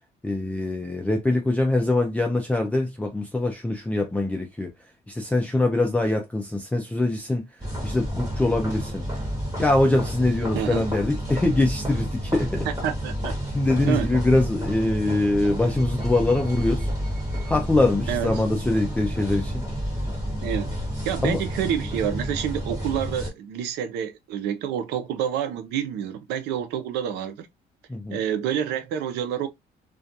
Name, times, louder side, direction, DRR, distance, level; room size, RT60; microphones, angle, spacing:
voice 1, 0.2-4.7 5.1-7.5 7.8-9.1 9.6-12.7 13.5-16.9 17.5-19.6 21.2-21.4 27.9-28.2, left 2 dB, 10° left, 0.4 m, -23 dB
sound 1, 7.6-23.3, equal, 20° right, 1.2 m, -30 dB
voice 2, 10.5-10.9 12.7-13.4 13.9-14.1 18.1-18.3 20.4-20.8 21.0-27.5 28.1-29.5, right 9 dB, 80° right, 0.5 m, -28 dB
2.4 x 2.2 x 2.6 m
cardioid pair, 110°, 17 cm